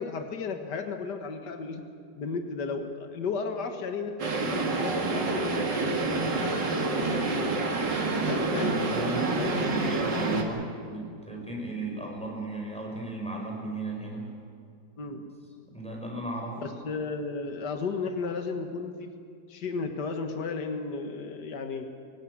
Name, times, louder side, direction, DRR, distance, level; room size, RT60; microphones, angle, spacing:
voice 1, 0.0-1.8 2.2-7.5 8.2-8.8 9.4-9.9 10.1-10.3 15.0-15.2 16.6-19.1 19.5-21.9, left 4 dB, 70° left, 5 dB, 2.2 m, -34 dB
sound 1, 4.2-10.4, right 3 dB, 75° right, 2.9 m, -28 dB
voice 2, 8.9-14.3 15.7-16.6, right 2 dB, 5° left, 0 dB, 5.7 m, -36 dB
23.0 x 17.5 x 9.8 m, 2.4 s
omnidirectional pair, 1.9 m